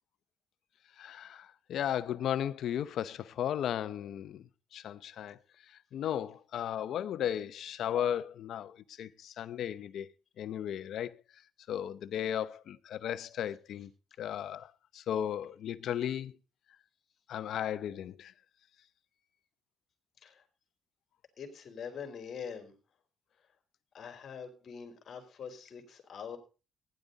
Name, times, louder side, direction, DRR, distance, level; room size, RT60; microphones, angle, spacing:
voice 1, 1.0-4.4 4.7-5.4 5.9-10.1 10.4-11.2 11.7-13.9 14.2-16.3 17.3-18.3, left 10 dB, 70° left, 0.8 m, -35 dB
voice 2, 21.4-22.7 23.9-26.4, left 6 dB, 55° left, 3.7 m, -44 dB
16.0 x 10.5 x 4.0 m
cardioid pair, 100°, 0 cm